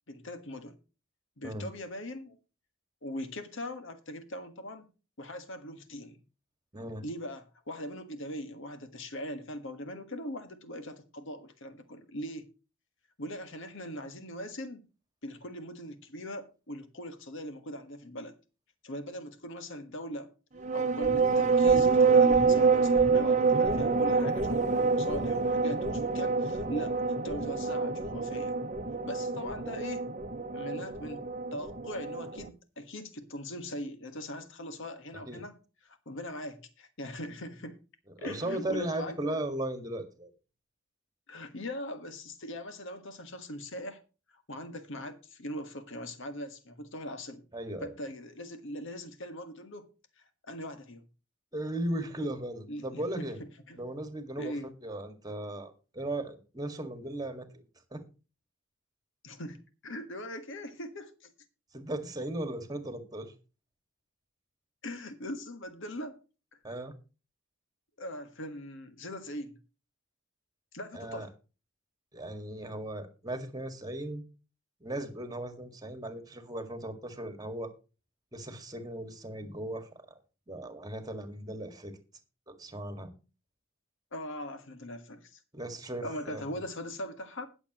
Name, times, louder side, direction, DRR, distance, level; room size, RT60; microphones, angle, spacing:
voice 1, 0.1-0.8 1.4-2.4 3.0-4.9 5.2-6.2 7.0-12.5 13.2-14.8 15.2-18.3 18.8-20.3 20.7-28.6 29.0-30.1 30.5-31.2 31.5-35.6 35.8-37.8 38.2-39.4 41.3-44.0 44.3-47.5 47.8-49.9 50.2-51.0 52.7-53.8 54.4-54.7 59.2-61.3 64.8-66.2 68.0-69.6 70.7-71.3 84.1-85.4 86.0-87.5, left 1 dB, 65° left, 1.6 m, -41 dB
voice 2, 6.7-7.0 35.3-35.4 38.2-40.3 47.5-47.9 51.5-53.4 53.8-57.6 57.9-58.0 61.7-63.3 66.6-66.9 70.9-71.3 72.1-74.2 74.8-77.7 78.3-79.9 80.5-81.9 82.5-83.1 85.5-86.4, right 1 dB, 20° right, 1.9 m, -37 dB
sound 1, 20.6-32.5, right 4 dB, 35° right, 0.9 m, -26 dB
20.5 x 7.1 x 3.0 m
head